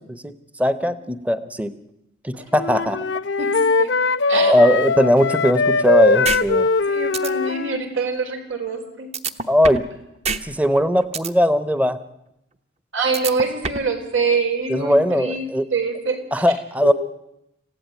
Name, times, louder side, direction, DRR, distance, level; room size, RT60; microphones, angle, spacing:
voice 1, 0.0-1.7 2.2-3.0 4.5-6.7 9.5-9.9 10.4-12.0 14.7-15.7 16.3-16.9, equal, 5° right, 13 dB, 0.8 m, -19 dB
Wind instrument woodwind instrument, 2.5-7.8, left 3 dB, 65° left, 0.8 m, -20 dB
voice 2, 3.4-4.0 4.3-4.7 6.9-9.1 12.9-16.2 16.8-16.9, right 4 dB, 90° right, 4 dB, 4.5 m, -25 dB
sound 1, 6.2-6.4 6.8-6.9 7.1-7.3 9.1-9.9 10.2-10.4 10.8-11.3 13.1-13.9, right 5 dB, 35° right, 1.0 m, -25 dB
26.5 x 16.0 x 9.1 m, 0.86 s
head